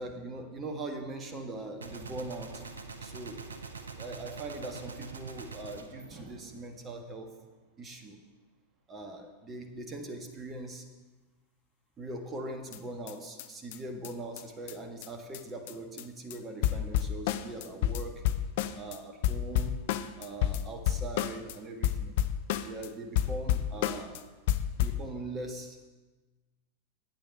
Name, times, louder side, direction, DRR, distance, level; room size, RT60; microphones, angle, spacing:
voice 1, 0.0-2.7 3.0-3.5 4.0-7.4 7.8-8.2 8.9-10.9 12.0-18.3 18.7-19.8 20.2-22.2 22.6-24.3 24.8-25.8, right 2 dB, 20° right, 5 dB, 1.6 m, -41 dB
Gunshot gunfire, 1.8-7.0, right 4 dB, 70° right, 0.9 m, -44 dB
sound 1, 12.7-12.8 13.1-13.2 13.4-13.5 13.7-13.8 14.0-14.1 14.4-14.5 14.7-14.8 15.0-15.1 15.3-15.4 15.7-16.0 16.3-16.4 16.6-19.0 19.2-21.6 21.8-22.9 23.2-24.2 24.5-25.0, left 11 dB, 50° left, 0.6 m, -30 dB
11.5 x 9.1 x 5.5 m, 1.2 s
figure-of-eight pair, 90°, 0 cm